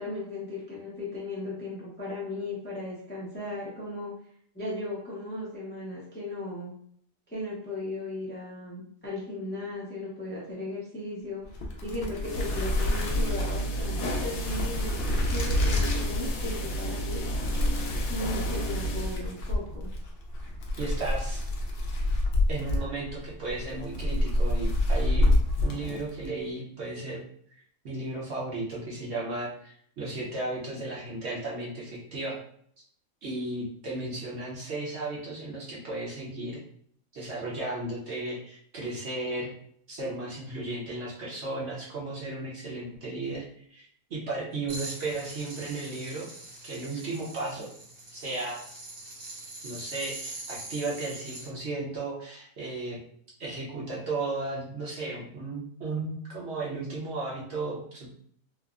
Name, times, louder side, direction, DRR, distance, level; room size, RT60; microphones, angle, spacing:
voice 1, 0.0-4.1 4.5-6.7 7.3-11.4 11.8-17.2 18.1-19.9, left 2 dB, 15° left, -6 dB, 0.4 m, -36 dB
sound 1, 11.4-26.4, left 1 dB, 60° left, 0.6 m, -28 dB
sound 2, 12.2-19.2, right 1 dB, 80° left, 1.0 m, -32 dB
voice 2, 20.8-21.4 22.5-25.3 25.6-27.2 27.8-32.4 33.2-36.6 37.1-39.5 39.9-46.3 46.6-47.7 48.1-48.6 49.6-53.0 53.4-58.1, right 2 dB, 55° right, -5 dB, 1.0 m, -35 dB
sound 3, 44.7-51.5, right 2 dB, 85° right, 1.4 m, -43 dB
3.3 x 2.0 x 2.4 m, 0.63 s
omnidirectional pair, 1.5 m